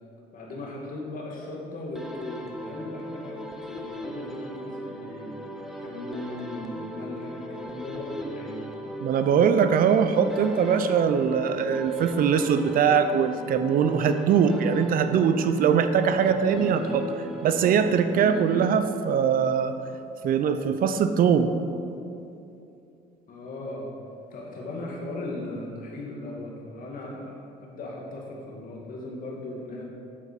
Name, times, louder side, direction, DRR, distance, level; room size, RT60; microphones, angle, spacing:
voice 1, 0.3-5.3 5.8-8.6 23.3-23.9 24.3-29.8, left 2 dB, 55° left, -2 dB, 2.3 m, -37 dB
sound 1, 2.0-19.2, equal, ahead, 1.1 m, -38 dB
voice 2, 9.0-17.1 17.4-19.7 20.2-21.5, right 7 dB, 60° right, 9 dB, 0.6 m, -22 dB
8.4 x 7.4 x 5.3 m, 2.7 s
cardioid pair, 110°, 17 cm